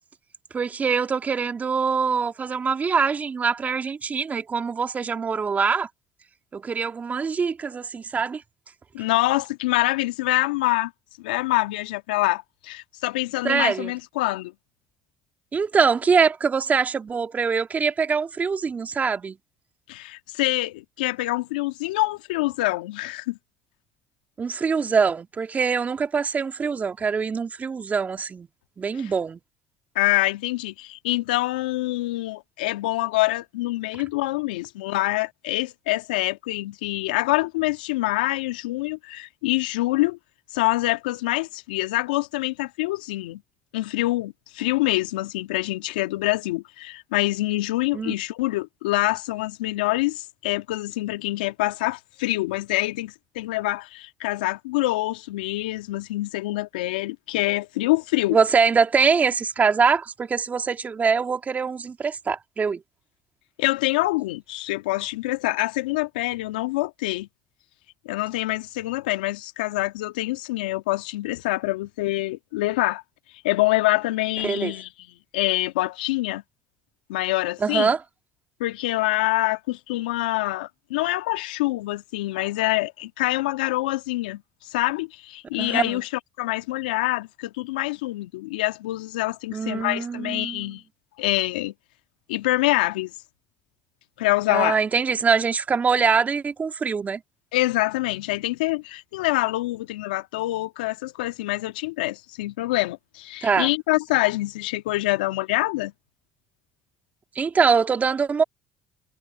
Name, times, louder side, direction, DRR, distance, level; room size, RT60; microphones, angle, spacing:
voice 1, 0.5-5.9 6.5-8.4 13.4-13.9 15.5-19.4 24.4-28.5 28.8-29.4 47.9-48.1 58.3-62.8 74.4-74.7 77.6-78.0 85.6-86.0 89.5-90.6 94.5-97.2 103.4-103.7 107.4-108.4, right 5 dB, 35° right, 2.3 m, -23 dB
voice 2, 8.9-10.9 11.2-14.5 19.9-23.4 29.0-29.1 29.9-40.2 40.5-43.4 43.7-58.4 63.6-67.3 68.0-73.0 73.4-74.9 75.3-76.4 77.1-77.9 78.6-86.1 86.4-90.8 91.2-91.7 92.3-93.1 94.2-94.8 97.5-105.9, left 19 dB, 85° left, 1.7 m, -25 dB
hypercardioid pair, 60°, 5 cm